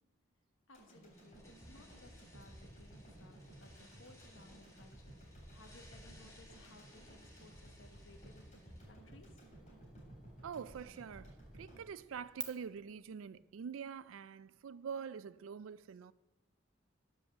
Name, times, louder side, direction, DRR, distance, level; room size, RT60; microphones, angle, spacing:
voice 1, 0.7-9.4, left 2 dB, 70° left, 1.0 m, -61 dB
sound 1, 0.7-13.0 13.3-13.4, right 1 dB, 35° left, 3.5 m, -56 dB
sound 2, 1.1-8.8, left 1 dB, 15° left, 1.6 m, -63 dB
sound 3, 2.4-12.4, right 2 dB, 5° right, 0.7 m, -57 dB
voice 2, 10.4-16.1, right 6 dB, 80° right, 0.4 m, -45 dB
9.7 x 5.4 x 6.8 m
head